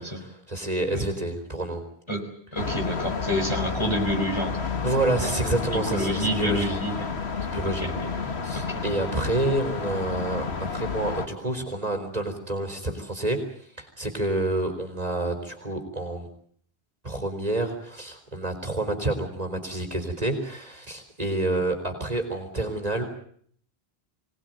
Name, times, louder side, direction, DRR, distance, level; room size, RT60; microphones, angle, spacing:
voice 1, 0.0-1.8 4.8-6.8 7.4-7.9 8.4-16.3 17.0-23.0, right 2 dB, 35° right, 4 dB, 4.0 m, -28 dB
voice 2, 2.5-4.6 5.7-7.1 7.8-8.8, equal, 25° left, 2 dB, 4.9 m, -29 dB
sound 1, 2.6-11.3, left 5 dB, 85° left, 1.9 m, -31 dB
24.5 x 19.0 x 9.1 m, 0.63 s
omnidirectional pair, 1.1 m